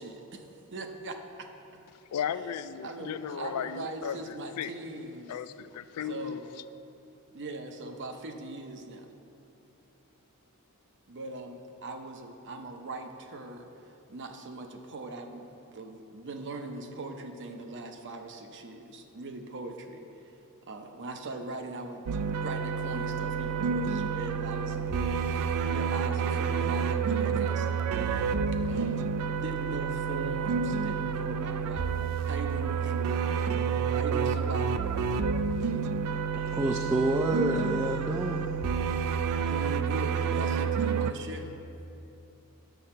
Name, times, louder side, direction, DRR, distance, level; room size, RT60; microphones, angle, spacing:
voice 1, 0.0-1.5 2.8-5.4 6.1-6.4 7.3-9.1 11.1-20.3 20.7-22.0 22.4-27.8 28.7-33.1 34.0-34.8 39.4-41.5, right 2 dB, 55° right, 5 dB, 0.7 m, -40 dB
voice 2, 2.1-4.7 5.3-6.4, left 8 dB, 80° left, 14 dB, 0.3 m, -35 dB
sound 1, 22.1-41.1, right 6 dB, 90° right, 0.4 m, -29 dB
voice 3, 36.3-38.5, right 1 dB, 15° right, 1 dB, 0.4 m, -29 dB
9.1 x 6.8 x 4.3 m, 2.8 s
head